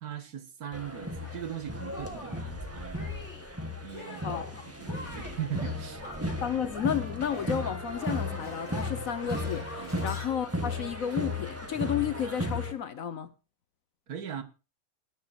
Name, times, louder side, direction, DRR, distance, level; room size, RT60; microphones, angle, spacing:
voice 1, 0.0-3.1 3.8-6.0 9.8-10.0 14.1-14.4, right 9 dB, 60° right, 1.9 m, -39 dB
sound 1, 0.7-12.7, left 1 dB, 10° right, 1.7 m, -35 dB
Shatter, 1.2-1.4 1.9-2.5 2.9-3.5 3.9-4.5 4.8-7.0 7.3-10.3, left 2 dB, 40° left, 3.3 m, -45 dB
voice 2, 4.1-4.6 6.4-13.3, left 9 dB, 60° left, 1.2 m, -32 dB
20.5 x 10.5 x 2.5 m
omnidirectional pair, 1.8 m